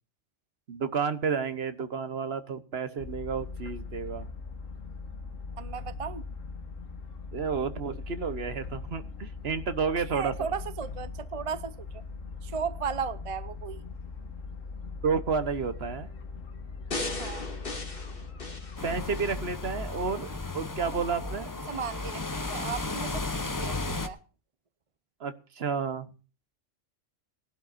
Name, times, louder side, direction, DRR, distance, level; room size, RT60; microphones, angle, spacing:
voice 1, 0.7-4.3 7.3-10.5 15.0-16.1 18.8-21.5 25.2-26.1, right 5 dB, 55° right, 11 dB, 1.3 m, -31 dB
sound 1, 3.0-19.2, left 4 dB, 90° left, 1.6 m, -40 dB
voice 2, 5.6-6.2 10.0-12.0 12.4-13.8 17.2-17.5 21.7-24.2, right 6 dB, 35° right, 14 dB, 0.6 m, -36 dB
sound 2, 16.9-19.4 19.9-20.0, left 2 dB, 45° left, 2.3 m, -37 dB
sound 3, 18.8-24.1, left 2 dB, 20° left, 0.7 m, -34 dB
19.5 x 11.5 x 2.5 m, 0.36 s
omnidirectional pair, 1.3 m